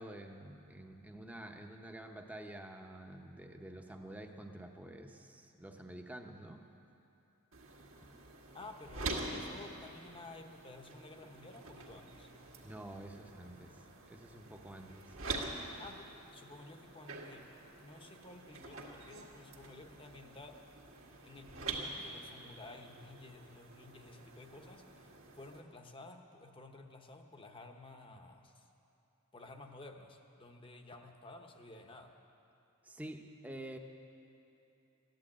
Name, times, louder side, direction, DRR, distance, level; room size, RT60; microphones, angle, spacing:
voice 1, 0.0-6.7 8.0-8.1 12.6-13.8 14.1-15.2 32.8-33.8, right 1 dB, 5° right, 3 dB, 0.8 m, -48 dB
sound 1, 7.5-25.6, right 3 dB, 65° right, 1.9 m, -46 dB
voice 2, 8.5-12.3 15.8-17.5 17.8-20.6 21.2-28.7 29.3-32.1, left 2 dB, 25° left, 4 dB, 0.9 m, -53 dB
15.0 x 10.5 x 8.7 m, 2.9 s
head